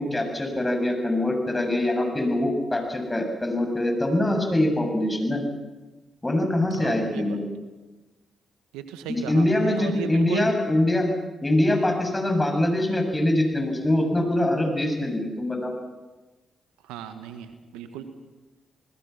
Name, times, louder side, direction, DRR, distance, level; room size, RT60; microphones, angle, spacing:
voice 1, 0.0-5.4 6.2-7.4 9.1-11.1 11.4-15.7, left 1 dB, 20° left, 3 dB, 7.7 m, -23 dB
voice 2, 6.7-7.4 8.7-10.5 16.9-18.0, right 9 dB, 85° right, 8 dB, 1.5 m, -35 dB
30.0 x 20.0 x 6.0 m, 1.1 s
hypercardioid pair, 40°, 0 cm